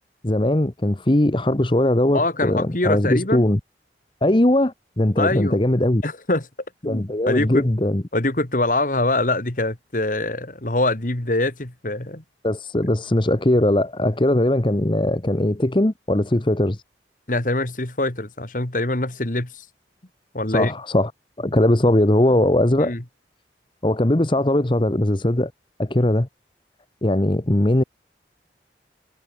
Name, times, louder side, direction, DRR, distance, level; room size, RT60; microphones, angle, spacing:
voice 1, 0.2-3.6 4.2-6.0 6.8-8.0 12.4-16.8 20.5-21.1 21.4-22.9 23.8-25.5 25.8-26.3 27.0-27.8, left 1 dB, 30° left, 1.0 m, -20 dB
voice 2, 2.1-3.5 5.2-5.6 6.0-6.5 6.8-7.7 8.1-12.2 17.3-19.6 20.3-20.7 22.8-23.0, left 2 dB, 50° left, 2.0 m, -24 dB
head